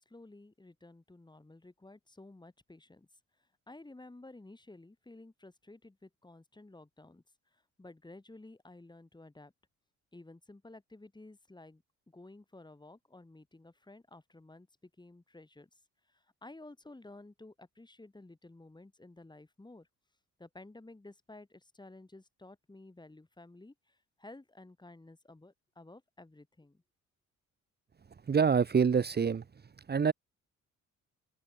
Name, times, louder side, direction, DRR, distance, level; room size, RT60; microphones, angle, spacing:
voice 1, 0.0-3.1 3.7-7.2 7.5-9.5 10.1-15.8 16.1-19.9 20.4-26.8, left 2 dB, 15° left, 6.0 m, -53 dB
voice 2, 28.3-29.4 29.9-30.1, right 6 dB, 35° right, 1.3 m, -26 dB
cardioid pair, 90°, 30 cm